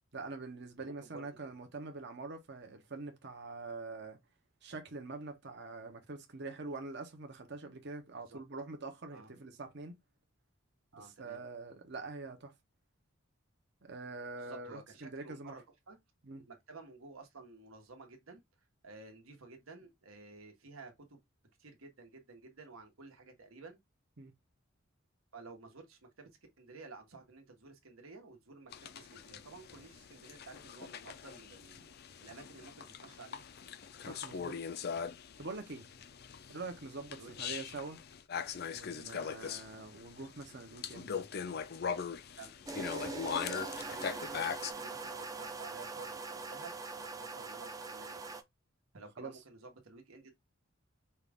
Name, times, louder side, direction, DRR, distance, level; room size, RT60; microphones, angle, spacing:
voice 1, 0.1-4.2 4.6-9.9 10.9-12.5 13.8-15.6 16.2-16.5 24.2-24.3 34.0-34.6 35.4-35.9 36.5-38.0 38.7-41.2 49.2-49.4, right 3 dB, 55° right, 0.9 m, -45 dB
voice 2, 0.8-1.3 8.3-8.4 9.1-9.3 10.9-11.4 14.4-16.0 16.5-18.4 18.8-21.2 21.6-23.8 25.3-26.3 26.6-31.9 32.2-33.4 37.1-37.4 42.4-48.4 48.9-50.3, right 3 dB, 80° right, 1.4 m, -52 dB
sound 1, 28.7-44.7, left 6 dB, 50° left, 0.5 m, -41 dB
sound 2, 42.7-48.4, right 3 dB, 15° right, 0.5 m, -42 dB
5.6 x 2.5 x 3.5 m
head